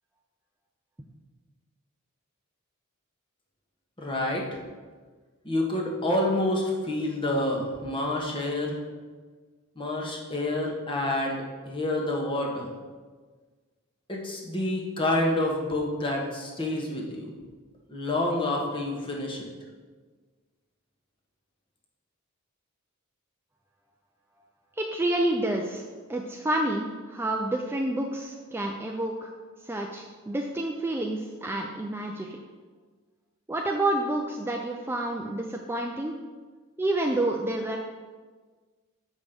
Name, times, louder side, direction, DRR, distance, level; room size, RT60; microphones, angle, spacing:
voice 1, 4.0-4.6 5.4-8.7 9.8-12.7 14.1-17.3 17.9-19.5, left 1 dB, 25° left, -1 dB, 1.3 m, -28 dB
voice 2, 24.8-25.8 26.1-29.3 29.6-32.4 33.5-36.1 36.8-37.8, right 1 dB, 10° right, 1 dB, 0.4 m, -29 dB
7.5 x 5.1 x 5.3 m, 1.4 s
head